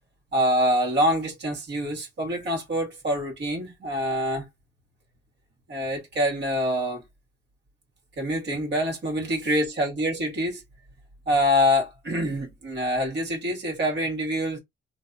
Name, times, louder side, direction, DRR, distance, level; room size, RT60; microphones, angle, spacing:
voice 1, 0.3-4.5 5.7-7.0 8.2-10.6 11.3-14.6, equal, 60° right, 2.0 m, -25 dB
3.3 x 2.3 x 4.0 m
cardioid pair, 90°, 20 cm